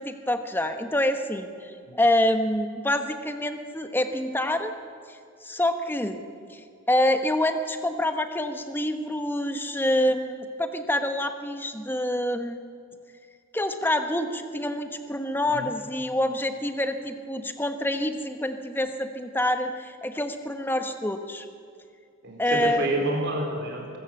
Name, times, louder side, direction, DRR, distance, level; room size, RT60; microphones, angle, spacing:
voice 1, 0.0-4.7 5.4-6.2 6.5-6.6 6.9-12.6 13.5-21.5 22.4-22.9, left 1 dB, 10° left, 7 dB, 1.2 m, -26 dB
voice 2, 22.2-24.0, right 1 dB, 55° right, 0 dB, 4.5 m, -29 dB
23.5 x 14.0 x 7.8 m, 2.3 s
head